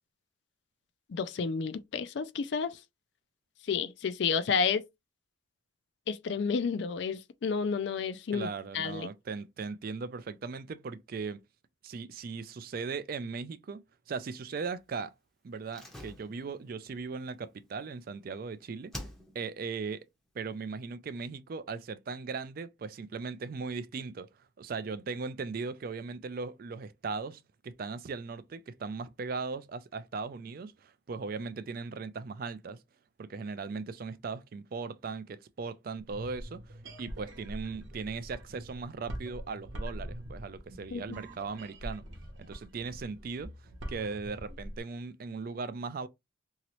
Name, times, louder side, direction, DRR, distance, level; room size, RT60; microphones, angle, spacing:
voice 1, 1.1-2.8 3.6-4.8 6.1-8.5 8.7-9.1 40.9-41.2, left 5 dB, 60° left, 0.4 m, -31 dB
voice 2, 8.3-11.4 11.8-15.1 15.4-18.9 19.3-20.1 20.3-32.8 33.2-42.0 42.4-43.5 43.9-46.1, right 4 dB, 45° right, 0.3 m, -38 dB
Slam, 15.7-18.4 18.9-19.7 19.9-20.0, left 1 dB, ahead, 0.6 m, -47 dB
sound 1, 36.0-44.8, equal, 70° right, 0.9 m, -43 dB
2.9 x 2.8 x 3.0 m
head